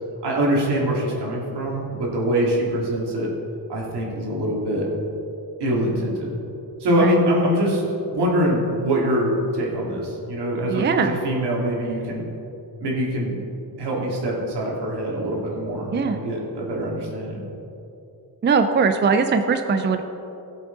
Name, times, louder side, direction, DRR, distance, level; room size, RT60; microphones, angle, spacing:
voice 1, 0.2-3.3 3.7-4.8 5.6-6.3 6.8-7.8 8.1-12.2 12.8-13.4 13.8-17.4, equal, 75° right, -4 dB, 2.8 m, -23 dB
voice 2, 10.7-11.2 15.9-16.2 18.4-20.0, right 5 dB, 25° right, 7 dB, 0.5 m, -20 dB
17.0 x 7.5 x 4.0 m, 2.9 s
wide cardioid pair, 135°, 41 cm